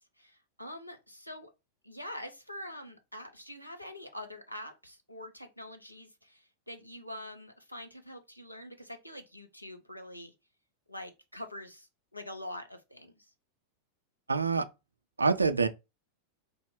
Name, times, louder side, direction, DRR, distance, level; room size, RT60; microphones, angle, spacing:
voice 1, 0.2-1.5 1.8-10.3 10.9-13.3, left 1 dB, 90° left, 0.5 m, -45 dB
voice 2, 14.3-14.7 15.2-15.7, right 4 dB, 80° right, 0.3 m, -25 dB
2.9 x 2.1 x 3.6 m
figure-of-eight pair, 90°, 0 cm